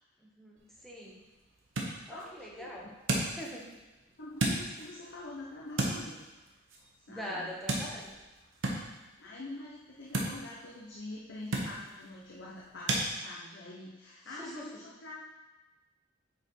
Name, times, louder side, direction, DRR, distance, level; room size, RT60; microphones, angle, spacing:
voice 1, 0.2-1.2 2.1-3.6 7.1-8.2 14.3-14.8, equal, ahead, -4 dB, 1.3 m, -43 dB
sound 1, 0.6-13.1, right 1 dB, 80° right, 1.3 m, -37 dB
voice 2, 2.1-2.9 4.2-6.2 7.1-7.5 9.2-15.2, left 2 dB, 65° left, -5 dB, 1.0 m, -45 dB
8.3 x 4.5 x 4.7 m, 1.1 s
head